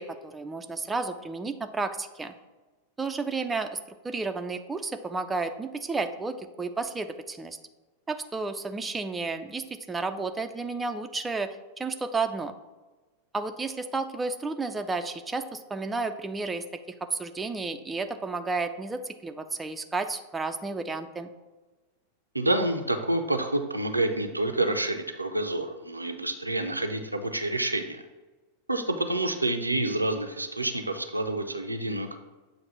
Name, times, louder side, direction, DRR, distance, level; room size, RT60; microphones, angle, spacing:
voice 1, 0.0-2.3 3.0-7.6 8.1-12.5 13.3-16.7 17.0-21.3, right 3 dB, 10° right, 7 dB, 0.4 m, -32 dB
voice 2, 22.3-28.0 28.7-32.2, right 2 dB, 85° right, 5 dB, 0.5 m, -28 dB
7.6 x 2.6 x 5.6 m, 1.2 s
figure-of-eight pair, 90°, 0 cm